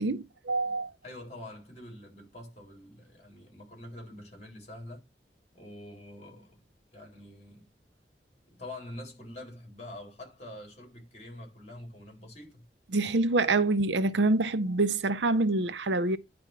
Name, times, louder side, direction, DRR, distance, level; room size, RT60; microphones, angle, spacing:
voice 1, 0.0-0.9 12.9-16.2, right 2 dB, 90° right, 0.7 m, -26 dB
voice 2, 1.0-5.0 5.5-6.6 6.9-7.7 8.5-12.7, left 1 dB, 40° left, 4.1 m, -45 dB
10.5 x 3.5 x 6.0 m
head